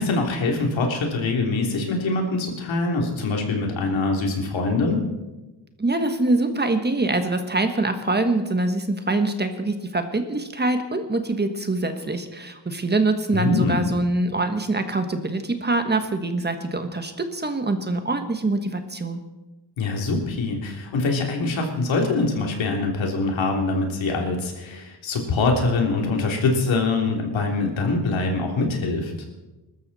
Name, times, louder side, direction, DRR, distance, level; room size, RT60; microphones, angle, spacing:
voice 1, 0.0-5.0 13.3-13.9 19.8-29.1, left 3 dB, 85° left, 1 dB, 3.3 m, -24 dB
voice 2, 5.8-19.2, right 2 dB, 20° right, 7 dB, 1.4 m, -24 dB
21.0 x 13.0 x 4.2 m, 1.1 s
cardioid pair, 110°, 45 cm